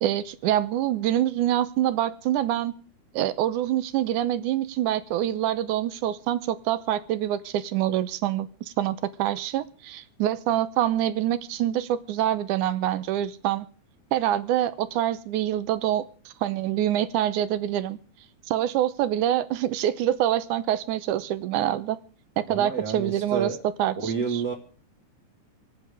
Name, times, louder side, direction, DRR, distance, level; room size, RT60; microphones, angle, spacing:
voice 1, 0.0-2.8 3.1-13.7 14.1-18.0 18.5-22.0 22.4-23.5 23.8-24.4, right 12 dB, 80° right, 14 dB, 2.3 m, -26 dB
voice 2, 22.5-23.6 23.9-24.5, right 6 dB, 40° right, 1 dB, 1.7 m, -29 dB
26.5 x 9.0 x 4.9 m, 0.39 s
omnidirectional pair, 3.6 m